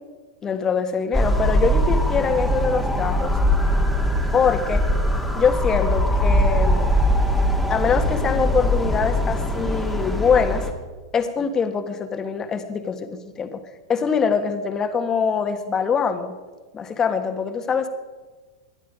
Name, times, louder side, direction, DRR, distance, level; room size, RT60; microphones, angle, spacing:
voice 1, 0.4-3.4 4.3-4.9 5.3-7.0 7.7-10.7 11.1-13.6 13.9-16.3 16.7-17.9, left 6 dB, 20° left, 7 dB, 1.5 m, -23 dB
sound 1, 1.1-10.7, equal, ahead, 1.9 m, -21 dB
20.5 x 12.0 x 5.0 m, 1.3 s
hypercardioid pair, 125°, 2 cm